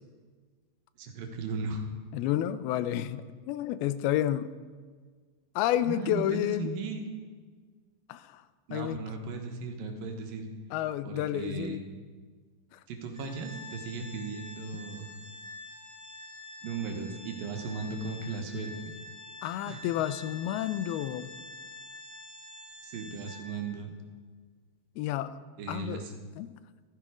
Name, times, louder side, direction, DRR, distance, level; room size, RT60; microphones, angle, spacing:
voice 1, 1.0-1.8 5.8-7.1 8.7-10.4 11.0-11.8 12.9-15.1 16.6-18.9 19.7-19.8 22.8-23.9 25.6-26.1, right 4 dB, 75° right, 4 dB, 3.0 m, -36 dB
voice 2, 2.1-4.5 5.6-6.7 8.1-8.4 8.7-9.0 10.7-11.8 12.7-12.8 19.4-21.3 25.0-25.3 25.7-26.1 26.4-26.5, left 12 dB, 85° left, 14 dB, 2.6 m, -30 dB
Organ, 13.1-23.8, left 2 dB, 20° right, 1.9 m, -47 dB
15.0 x 13.5 x 5.0 m, 1.6 s
omnidirectional pair, 4.3 m